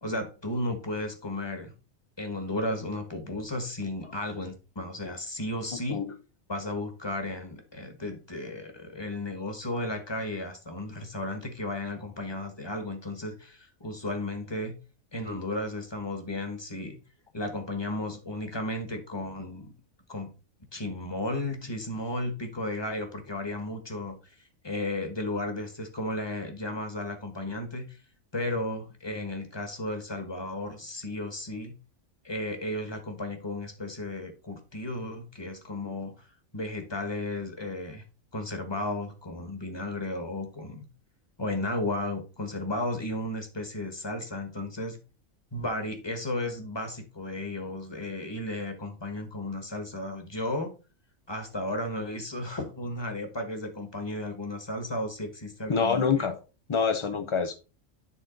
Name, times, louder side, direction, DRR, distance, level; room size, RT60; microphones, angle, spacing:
voice 1, 0.0-1.7 2.2-6.0 6.5-14.7 15.1-17.0 17.3-19.7 20.1-20.3 20.7-24.3 24.6-28.0 28.3-31.7 32.2-36.3 36.5-38.0 38.3-40.9 41.4-45.0 45.5-50.7 51.3-56.3, left 1 dB, 20° left, 1.3 m, -34 dB
voice 2, 55.7-56.4 56.7-57.5, left 5 dB, 50° left, 0.3 m, -26 dB
10.0 x 3.8 x 3.8 m
omnidirectional pair, 1.4 m